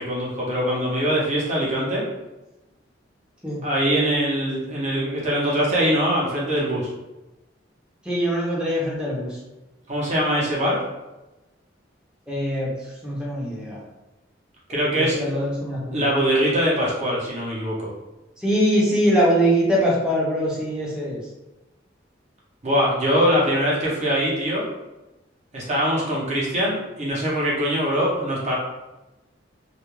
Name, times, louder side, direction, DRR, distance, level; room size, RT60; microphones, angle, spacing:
voice 1, 0.0-2.1 3.6-6.9 9.9-10.8 14.7-15.3 15.9-17.9 22.6-24.7 25.5-28.5, equal, 35° right, -5 dB, 0.7 m, -22 dB
voice 2, 8.0-9.4 12.3-12.7 13.0-13.8 14.9-16.0 18.4-21.2, equal, 5° right, -6 dB, 0.7 m, -22 dB
2.3 x 2.2 x 3.0 m, 1.0 s
head